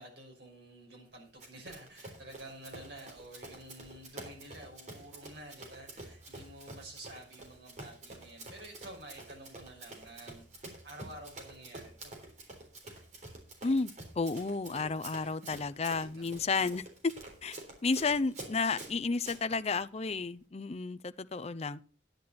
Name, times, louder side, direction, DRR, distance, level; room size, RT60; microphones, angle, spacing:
voice 1, 0.0-12.2 15.2-15.3 16.3-16.4, right 1 dB, 60° right, 5.8 m, -50 dB
Run, 1.4-19.4, right 2 dB, 40° right, 3.6 m, -48 dB
voice 2, 13.6-17.1 17.4-21.8, left 4 dB, 35° left, 0.5 m, -32 dB
10.5 x 10.5 x 4.2 m
head